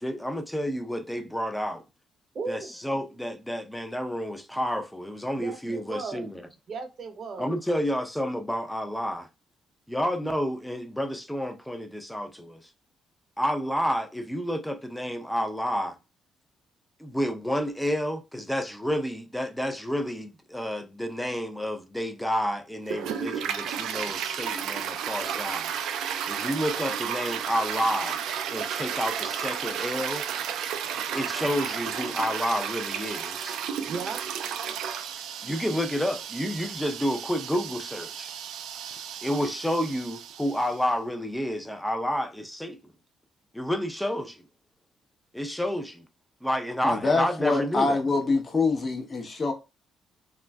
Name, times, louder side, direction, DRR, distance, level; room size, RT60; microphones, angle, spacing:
voice 1, 0.0-1.8 2.5-6.4 7.4-9.3 9.9-12.7 13.4-16.0 17.0-25.7 26.3-28.2 28.5-30.2 31.1-33.6 35.4-38.3 39.2-42.9 43.5-44.4 45.3-46.0 46.4-48.0, equal, 5° left, 0.5 m, -30 dB
voice 2, 2.3-2.7 5.4-6.3 6.7-7.5 33.8-34.2, right 4 dB, 50° right, 0.7 m, -35 dB
Toilet flush, 22.8-40.8, right 8 dB, 85° right, 0.3 m, -33 dB
voice 3, 46.8-49.5, left 3 dB, 35° left, 0.9 m, -25 dB
3.1 x 2.4 x 2.2 m
cardioid pair, 90°, 0 cm